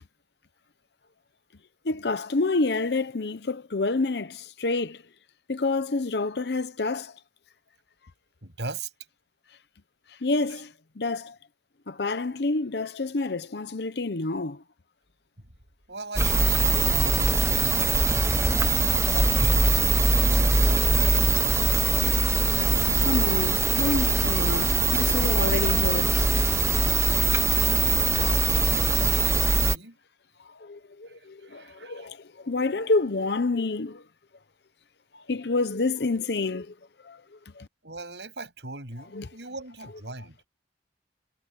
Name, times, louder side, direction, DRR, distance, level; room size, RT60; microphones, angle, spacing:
voice 1, 1.8-5.0 5.5-7.1 10.2-11.3 11.9-14.6 23.1-26.3 30.6-34.0 35.3-36.7 37.0-37.2 37.6-37.7 39.2-39.3, left 3 dB, 70° left, 0.8 m, -28 dB
voice 2, 8.4-8.9 10.5-10.6 15.9-17.9 18.7-21.5 28.1-30.0 31.1-32.1 37.8-40.4, right 3 dB, 80° right, 7.6 m, -40 dB
sound 1, 16.2-29.8, right 3 dB, 15° right, 0.8 m, -22 dB
head